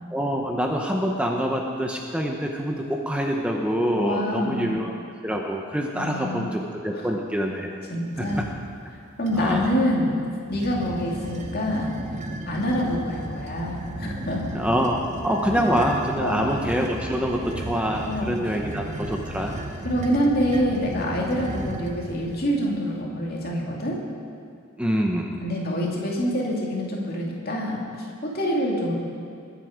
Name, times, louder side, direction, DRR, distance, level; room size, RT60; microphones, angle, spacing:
voice 1, 0.1-4.9 5.2-7.8 8.2-8.3 9.4-9.6 14.5-19.5 24.8-25.4, equal, 5° right, 1 dB, 0.7 m, -25 dB
voice 2, 3.9-4.7 5.9-6.5 6.9-7.1 7.9-8.5 9.2-10.2 10.5-11.9 12.5-14.5 15.5-15.6 16.2-16.5 18.0-18.4 19.8-24.0 25.4-28.9, equal, 45° left, -2 dB, 2.3 m, -26 dB
sound 1, 8.1-8.7 9.3-9.9 10.5-22.5, right 1 dB, 35° right, 0.8 m, -35 dB
21.5 x 7.8 x 5.0 m, 2.4 s
head